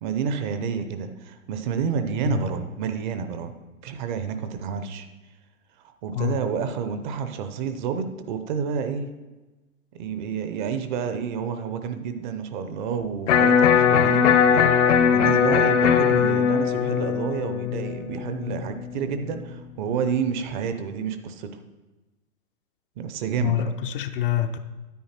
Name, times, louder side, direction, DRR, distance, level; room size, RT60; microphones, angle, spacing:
voice 1, 0.0-3.5 3.8-5.1 6.0-9.1 10.0-14.7 15.1-21.6 23.0-23.6, right 7 dB, 35° right, 9 dB, 0.8 m, -29 dB
voice 2, 6.1-6.4 23.4-24.6, left 11 dB, 40° left, 8 dB, 0.6 m, -26 dB
Electric guitar, 13.3-19.3, left 7 dB, 55° left, 1.0 m, -20 dB
9.4 x 9.1 x 4.4 m, 1.2 s
hypercardioid pair, 125°, 42 cm